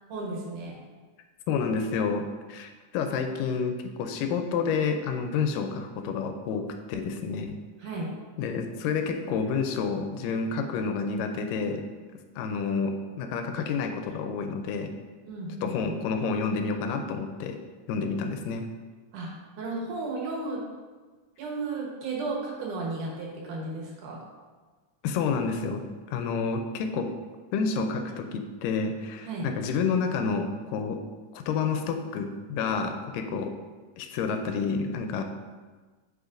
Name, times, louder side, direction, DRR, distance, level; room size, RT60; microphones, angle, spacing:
voice 1, 0.1-0.8 7.8-8.1 15.3-16.0 19.1-20.6 21.4-24.2 29.2-29.5, right 3 dB, 75° right, -2 dB, 2.5 m, -34 dB
voice 2, 1.5-7.6 8.4-11.8 12.4-14.9 15.6-17.6 17.9-18.7 25.0-25.8 26.1-27.1 27.5-31.0 31.3-33.5 34.0-35.2, left 5 dB, 85° left, 6 dB, 2.2 m, -29 dB
8.0 x 5.2 x 2.5 m, 1.4 s
omnidirectional pair, 3.8 m